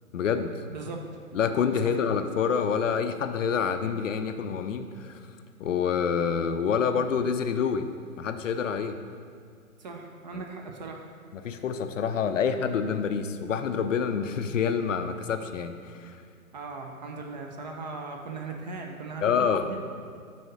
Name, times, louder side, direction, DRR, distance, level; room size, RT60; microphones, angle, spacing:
voice 1, 0.1-0.5 1.3-5.2 5.6-7.9 8.2-9.0 10.3-10.4 11.3-16.2 19.2-19.7, left 6 dB, 60° left, 8 dB, 0.5 m, -27 dB
voice 2, 0.7-1.2 1.8-2.0 9.8-11.1 16.5-19.8, right 3 dB, 30° right, 2 dB, 0.5 m, -38 dB
6.3 x 4.2 x 5.3 m, 2.3 s
figure-of-eight pair, 120°, 44 cm